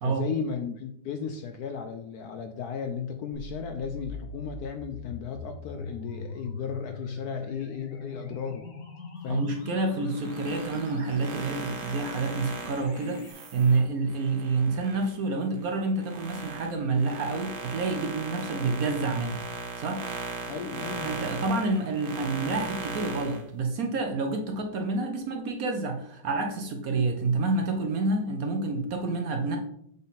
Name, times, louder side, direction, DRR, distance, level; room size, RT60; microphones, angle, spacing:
voice 1, 0.0-8.7 9.2-9.5 20.5-21.1, left 6 dB, 75° left, 6 dB, 0.9 m, -35 dB
sound 1, 3.3-13.3, left 3 dB, 50° left, 1.4 m, -42 dB
voice 2, 9.3-19.4 19.8-20.1 21.0-29.6, right 3 dB, 60° right, 4 dB, 1.0 m, -28 dB
sound 2, 10.0-15.1 15.6-23.4, right 4 dB, 85° right, 1.8 m, -38 dB
7.1 x 3.9 x 4.0 m, 0.72 s
omnidirectional pair, 2.1 m